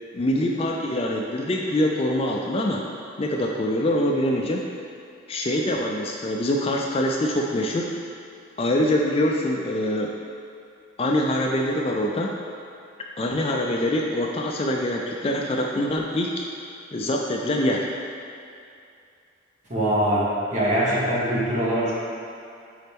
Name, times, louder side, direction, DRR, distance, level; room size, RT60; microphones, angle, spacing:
voice 1, 0.1-2.8 3.2-4.6 5.3-7.9 8.6-10.1 11.0-12.3 13.2-16.4 16.9-17.9, left 1 dB, 30° left, 0 dB, 0.4 m, -24 dB
voice 2, 19.7-21.9, right 1 dB, 35° right, -7 dB, 1.5 m, -23 dB
8.7 x 4.1 x 3.5 m, 2.5 s
head